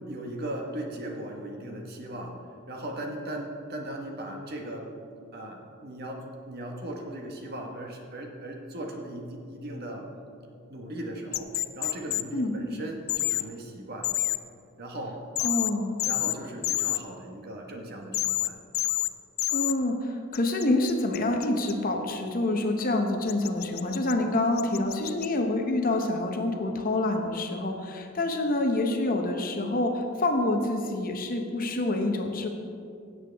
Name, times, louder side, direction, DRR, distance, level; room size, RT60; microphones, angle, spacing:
voice 1, 0.1-2.4 2.7-4.9 5.3-10.1 10.7-14.2 14.8-15.2 16.0-18.6, right 1 dB, 50° right, 1 dB, 1.4 m, -38 dB
sound 1, 11.3-12.2 13.1-13.4 14.0-14.4 15.4-15.7 16.0-16.3 16.6-17.0 18.1-18.5 18.7-19.1 19.4-19.7 20.3-21.7 23.3-24.1 24.6-25.3, left 16 dB, 65° left, 0.4 m, -28 dB
voice 2, 12.3-12.6 15.4-16.0 19.5-32.5, left 2 dB, 40° left, 3 dB, 0.8 m, -27 dB
16.5 x 7.8 x 3.5 m, 2.5 s
head